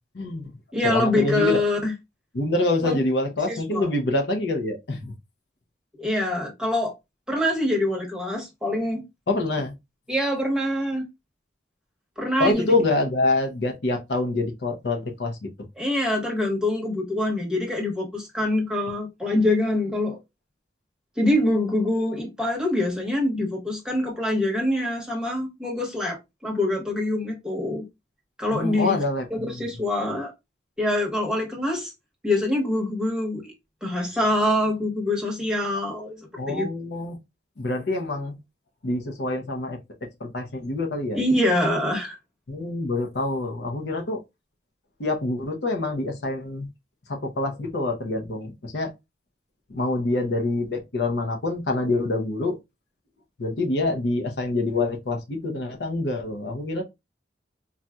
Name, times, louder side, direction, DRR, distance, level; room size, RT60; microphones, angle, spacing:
voice 1, 0.1-0.5 0.8-1.6 2.3-5.1 9.3-9.7 12.4-15.7 28.5-29.6 36.4-37.2 37.6-38.3 38.8-41.2 42.5-44.2 45.0-46.7 47.1-48.9 49.7-52.6 53.4-56.8, left 2 dB, 65° left, 0.7 m, -26 dB
voice 2, 0.7-1.9 2.8-2.9 3.7-3.8 6.0-6.9 7.3-9.0 10.1-11.1 12.2-12.7 15.8-20.2 21.2-26.2 26.4-27.8 28.4-29.0 29.6-30.3 30.8-31.9 32.2-33.5 33.8-36.7 41.1-42.2, left 1 dB, 5° right, 1.0 m, -24 dB
4.0 x 2.4 x 2.2 m
head